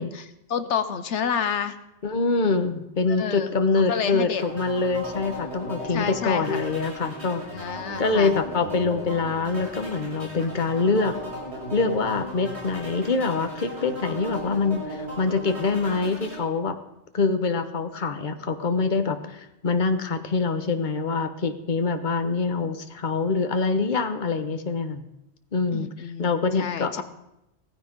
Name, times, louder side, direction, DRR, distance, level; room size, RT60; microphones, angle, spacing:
voice 1, 0.0-1.8 3.1-3.5 3.9-4.4 5.9-6.7 7.5-8.4 25.7-27.0, left 7 dB, 80° left, 11 dB, 1.2 m, -29 dB
voice 2, 2.0-7.4 8.0-11.2 11.7-16.8 17.1-25.0 25.5-25.9 26.2-27.0, left 4 dB, 45° left, 8 dB, 1.3 m, -25 dB
sound 1, 4.4-16.4, equal, 65° right, 6.0 m, -36 dB
17.0 x 15.0 x 5.3 m, 0.87 s
omnidirectional pair, 1.2 m